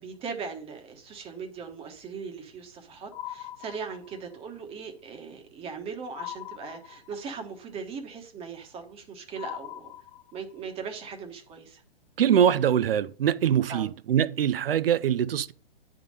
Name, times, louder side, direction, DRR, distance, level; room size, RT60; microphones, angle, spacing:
voice 1, 0.0-9.9 10.3-11.8 13.7-13.9, right 5 dB, 20° right, 1.2 m, -39 dB
sound 1, 3.1-4.4 6.1-7.4 9.4-10.6, left 13 dB, 50° left, 1.1 m, -41 dB
voice 2, 12.2-15.5, right 9 dB, 65° right, 0.6 m, -23 dB
9.3 x 3.7 x 5.1 m
figure-of-eight pair, 125°, 31 cm